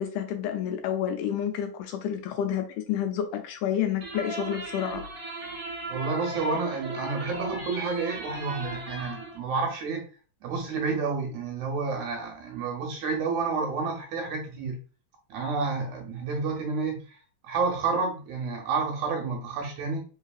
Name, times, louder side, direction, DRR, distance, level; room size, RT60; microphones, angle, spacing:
voice 1, 0.0-5.0, left 9 dB, 80° left, 1.9 m, -29 dB
sound 1, 4.0-9.4, right 2 dB, 35° right, 1.4 m, -37 dB
voice 2, 5.9-10.0 10.4-14.8 15.3-17.2 17.4-20.0, right 4 dB, 75° right, 2.0 m, -30 dB
4.7 x 3.2 x 2.4 m
omnidirectional pair, 3.8 m